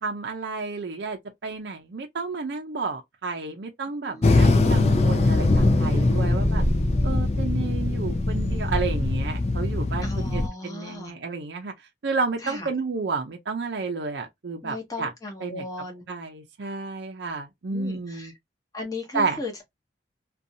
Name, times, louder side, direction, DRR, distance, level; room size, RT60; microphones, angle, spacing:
voice 1, 0.0-6.6 7.0-11.7 12.0-15.1 15.4-15.6 16.1-18.3 19.1-19.4, right 4 dB, 60° right, 0.5 m, -31 dB
voice 2, 4.0-4.9 10.0-11.1 12.4-12.7 14.6-16.0 17.7-18.3 18.7-19.6, left 2 dB, 20° left, 0.9 m, -37 dB
sound 1, 4.2-10.5, left 2 dB, 35° left, 0.4 m, -21 dB
2.6 x 2.2 x 2.6 m
head